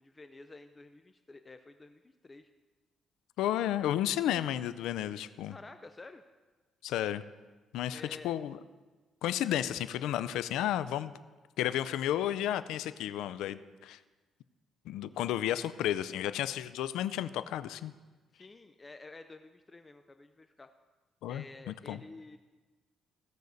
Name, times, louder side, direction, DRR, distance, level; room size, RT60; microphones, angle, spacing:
voice 1, 0.0-2.5 5.5-6.2 7.9-8.3 18.3-20.7 21.3-22.4, left 3 dB, 25° left, 8 dB, 0.5 m, -51 dB
voice 2, 3.4-5.6 6.8-7.2 7.7-8.6 9.2-11.1 11.6-14.0 14.9-17.9 21.2-22.0, left 12 dB, 90° left, 13 dB, 0.4 m, -32 dB
16.5 x 6.4 x 4.0 m, 1.3 s
cardioid pair, 90°, 0 cm